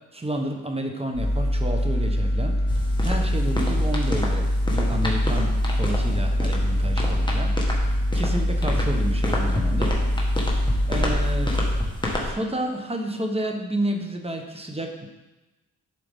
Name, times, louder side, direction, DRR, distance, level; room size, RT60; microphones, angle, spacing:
voice 1, 0.1-9.9 10.2-10.3 10.9-11.6 12.2-15.1, right 1 dB, 15° right, 3 dB, 1.1 m, -30 dB
sound 1, 1.1-11.8, equal, 70° left, 2.5 m, -23 dB
sound 2, 2.7-12.3, left 1 dB, 10° left, 1.5 m, -30 dB
11.0 x 4.8 x 3.6 m, 1.1 s
cardioid pair, 85°, 37 cm